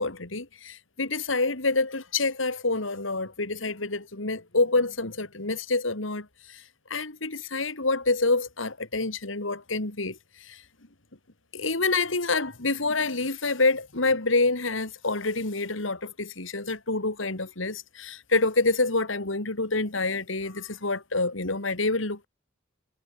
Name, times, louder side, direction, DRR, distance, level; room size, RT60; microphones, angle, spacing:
voice 1, 0.0-6.6 6.9-10.6 11.5-22.3, left 3 dB, 80° left, 2.9 m, -27 dB
head